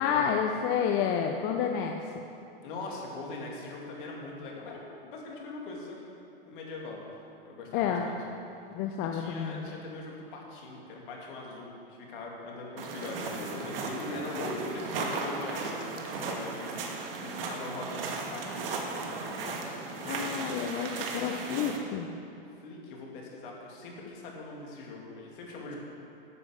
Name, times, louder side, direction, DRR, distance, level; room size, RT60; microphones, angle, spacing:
voice 1, 0.0-1.9 7.7-8.1 8.7-9.7 20.0-22.1, left 8 dB, 35° left, 3 dB, 0.7 m, -29 dB
voice 2, 2.6-6.2 6.4-7.0 7.4-8.2 9.1-19.9 22.6-25.8, left 3 dB, 60° left, -2 dB, 2.7 m, -41 dB
sound 1, 12.8-21.8, right 4 dB, 75° right, 1.6 m, -36 dB
9.6 x 7.5 x 6.6 m, 2.7 s
hypercardioid pair, 135°, 29 cm